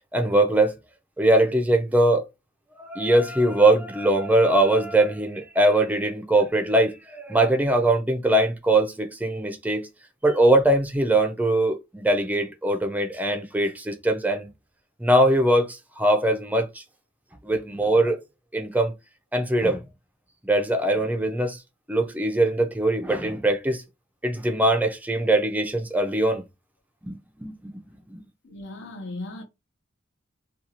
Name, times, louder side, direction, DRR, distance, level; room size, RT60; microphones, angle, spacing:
voice 1, 0.1-0.7 1.2-2.2 2.8-9.9 10.2-14.5 15.0-16.7 17.4-18.2 18.5-18.9 19.3-19.8 20.4-21.6 21.9-23.8 24.2-26.4 27.0-27.5 28.1-28.2, right 1 dB, 10° right, 0.5 m, -21 dB
voice 2, 28.4-29.4, left 2 dB, 65° left, 0.8 m, -37 dB
2.6 x 2.3 x 2.8 m
head